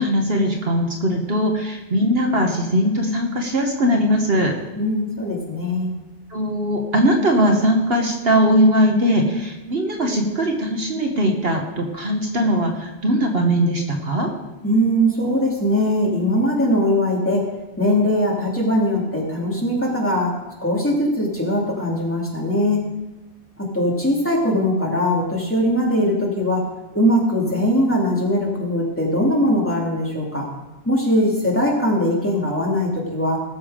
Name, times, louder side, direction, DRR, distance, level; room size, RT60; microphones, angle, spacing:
voice 1, 0.0-4.5 6.3-14.3, equal, 60° right, 2 dB, 1.5 m, -20 dB
voice 2, 4.7-5.9 14.6-17.5 17.8-20.3 20.6-22.8 23.7-26.6 26.9-30.5 30.8-33.4, equal, 10° left, -4 dB, 2.7 m, -20 dB
18.5 x 7.0 x 5.0 m, 1.1 s
omnidirectional pair, 1.2 m